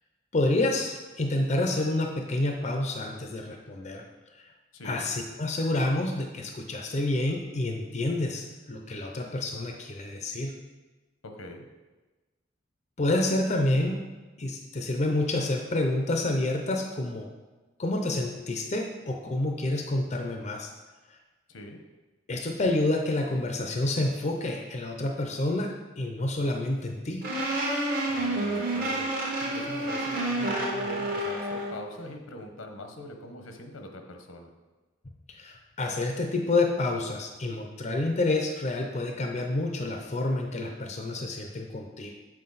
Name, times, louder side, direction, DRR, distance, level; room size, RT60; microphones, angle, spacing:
voice 1, 0.3-4.0 4.3-4.4 4.8-10.6 13.0-14.0 14.4-17.3 17.8-20.7 21.1-21.2 22.3-27.3 35.3-42.1, left 2 dB, 35° left, 2 dB, 0.5 m, -28 dB
voice 2, 4.7-5.0 11.2-11.7 21.5-21.8 28.1-29.1 29.4-34.5, left 1 dB, 80° left, 4 dB, 0.9 m, -42 dB
sound 1, 27.2-31.8, right 1 dB, 45° right, 1.1 m, -29 dB
7.6 x 4.5 x 4.0 m, 1.2 s
head